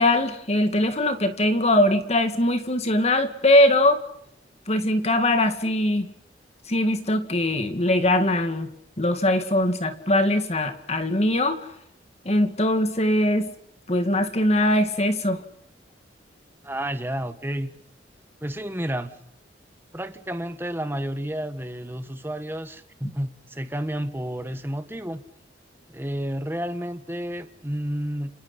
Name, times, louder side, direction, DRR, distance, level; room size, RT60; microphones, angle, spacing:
voice 1, 0.0-4.0 4.7-6.1 6.7-8.7 9.0-11.7 12.3-13.5 13.9-15.4, left 1 dB, 35° left, 8 dB, 2.2 m, -21 dB
voice 2, 16.6-17.8 18.4-19.2 19.9-25.2 25.9-28.4, right 1 dB, 10° right, 10 dB, 1.5 m, -31 dB
29.5 x 27.5 x 5.7 m, 0.74 s
head